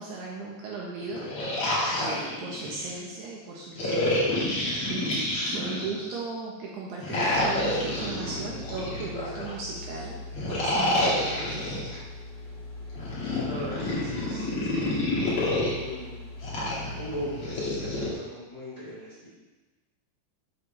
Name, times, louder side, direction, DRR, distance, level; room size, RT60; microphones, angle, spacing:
voice 1, 0.0-10.2 10.5-11.8, right 3 dB, 70° right, -4 dB, 2.9 m, -37 dB
sound 1, 1.0-2.9 3.8-6.1 7.0-9.5 10.3-12.0 12.9-15.7 16.4-18.1, left 1 dB, 45° left, 2.1 m, -28 dB
sound 2, 7.3-18.1, left 2 dB, 60° left, 1.0 m, -41 dB
voice 2, 13.2-14.8 15.6-16.1 16.9-19.3, equal, 20° left, -10 dB, 3.0 m, -39 dB
11.5 x 7.9 x 3.3 m, 1.2 s
omnidirectional pair, 5.4 m